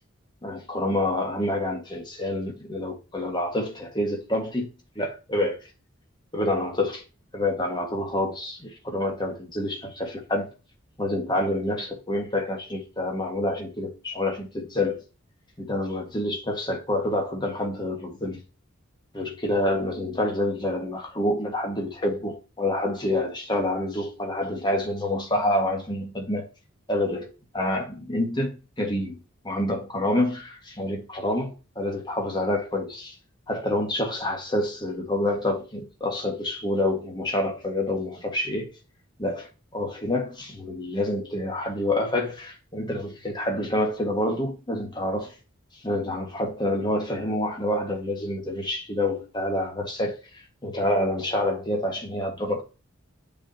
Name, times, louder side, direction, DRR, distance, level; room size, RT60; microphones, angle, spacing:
voice 1, 0.4-4.7 4.9-5.6 6.3-7.0 7.3-10.5 11.0-15.0 15.6-18.4 19.1-26.4 26.9-27.3 27.5-29.1 29.4-33.1 33.5-38.7 39.2-39.5 39.7-45.3 45.8-52.6, left 1 dB, 20° left, 1.7 m, -27 dB
8.3 x 5.0 x 2.8 m
head